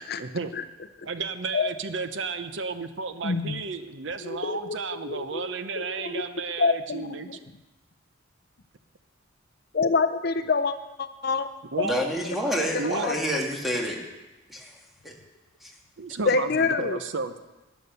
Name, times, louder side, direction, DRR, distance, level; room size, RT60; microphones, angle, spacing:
voice 1, 0.2-0.5 1.0-7.3 11.7-12.0 12.8-13.1 16.0-17.4, right 4 dB, 60° right, 10 dB, 0.7 m, -32 dB
voice 2, 3.2-3.6 4.2-5.5 5.8-6.2 6.6-7.4 9.7-11.5 11.8-12.0 13.0-13.1 16.3-17.0, left 4 dB, 50° left, 11 dB, 0.5 m, -26 dB
voice 3, 11.8-14.0 14.5-14.7 15.0-15.1 15.6-15.7, equal, ahead, -1 dB, 1.9 m, -28 dB
11.0 x 10.5 x 6.7 m, 1.1 s
head